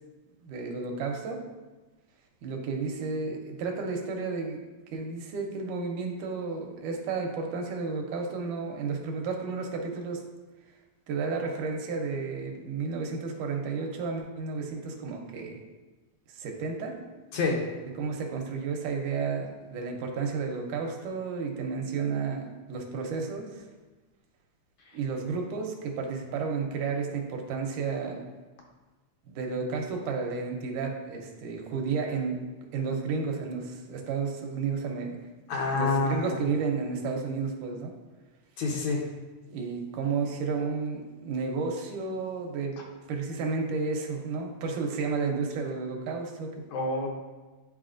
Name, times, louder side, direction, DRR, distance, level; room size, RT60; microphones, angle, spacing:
voice 1, 0.4-1.4 2.4-4.6 4.9-10.2 11.1-15.6 16.4-17.0 17.8-23.7 24.9-28.2 29.3-32.4 32.7-35.2 35.6-37.9 39.5-42.8 43.1-46.5, right 4 dB, 80° right, 2 dB, 2.2 m, -32 dB
voice 2, 35.5-36.4 38.6-39.0 46.7-47.1, left 3 dB, 70° left, -1 dB, 2.0 m, -27 dB
10.5 x 4.1 x 2.5 m, 1.2 s
omnidirectional pair, 3.7 m